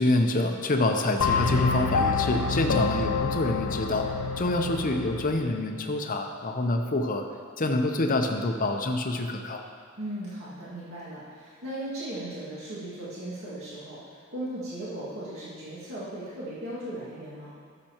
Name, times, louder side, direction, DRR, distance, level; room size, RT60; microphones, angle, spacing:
voice 1, 0.0-4.1 4.4-7.2 7.6-9.6, left 2 dB, 40° left, 4 dB, 0.7 m, -26 dB
sound 1, 1.2-5.4, left 4 dB, 80° left, 0.7 m, -27 dB
voice 2, 10.0-17.5, right 1 dB, 65° right, -9 dB, 2.1 m, -37 dB
13.0 x 6.7 x 3.0 m, 2.2 s
head